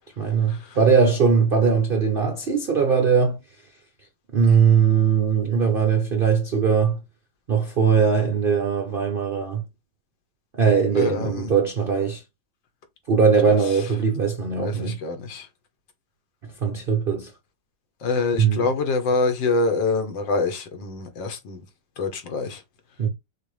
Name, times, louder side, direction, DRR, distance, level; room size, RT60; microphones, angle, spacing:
voice 1, 0.2-3.4 4.3-7.0 7.5-9.6 10.5-12.2 13.1-15.0 16.6-17.3 18.4-18.7 23.0-23.1, right 6 dB, 80° right, 0.4 m, -20 dB
voice 2, 10.9-11.5 14.6-15.5 18.0-21.6 22.0-22.6, left 3 dB, 80° left, 1.8 m, -25 dB
6.5 x 2.5 x 3.2 m
omnidirectional pair, 2.0 m